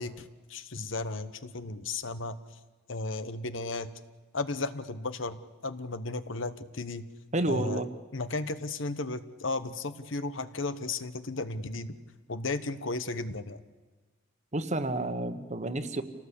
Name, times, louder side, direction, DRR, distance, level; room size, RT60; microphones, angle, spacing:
voice 1, 0.0-2.4 2.9-3.9 4.3-7.1 7.5-7.8 8.1-12.0 12.3-13.6, left 3 dB, 70° left, 12 dB, 1.1 m, -34 dB
voice 2, 7.3-7.9 14.5-16.0, right 2 dB, 35° right, 10 dB, 1.4 m, -30 dB
27.0 x 18.0 x 8.4 m, 1.2 s
head